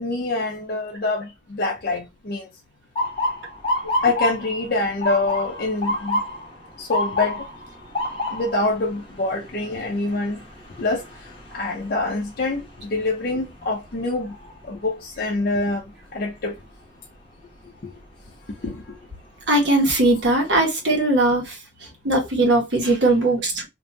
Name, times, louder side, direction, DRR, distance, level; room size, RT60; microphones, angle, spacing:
voice 1, 0.0-2.5 4.0-6.2 6.8-7.4 8.3-10.4 10.8-11.0 11.5-14.3 14.7-15.8 16.1-16.5 17.8-17.9 18.6-18.8, left 2 dB, 55° left, 0.5 m, -25 dB
Motor vehicle (road) / Siren, 3.0-14.9 15.3-15.7 16.5-16.8 18.7-18.9 19.5-19.6 20.0-20.7, left 1 dB, 30° left, 0.9 m, -30 dB
voice 2, 19.5-21.4 22.0-23.7, right 2 dB, 75° right, 1.2 m, -19 dB
2.8 x 2.6 x 2.2 m
head